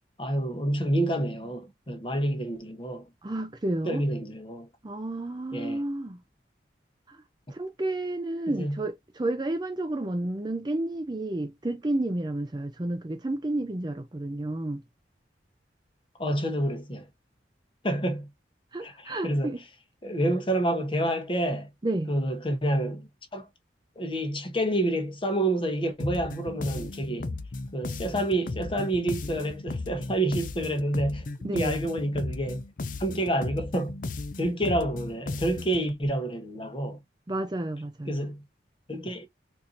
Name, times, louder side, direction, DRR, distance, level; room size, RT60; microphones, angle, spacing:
voice 1, 0.2-3.0 3.9-4.7 5.5-5.8 8.5-8.8 16.2-17.1 17.8-18.3 18.8-19.6 20.0-21.7 22.1-23.5 24.0-27.3 27.7-32.6 33.0-34.0 34.4-37.0 38.1-38.4 38.9-39.3, right 1 dB, 30° left, 0.9 m, -28 dB
voice 2, 3.2-4.1 4.8-6.2 7.1-7.2 7.5-14.8 18.7-19.6 21.8-22.1 31.4-31.8 37.3-38.3, right 1 dB, 25° right, 0.5 m, -31 dB
sound 1, 26.0-35.9, left 3 dB, 45° left, 0.5 m, -35 dB
4.3 x 2.6 x 2.5 m
head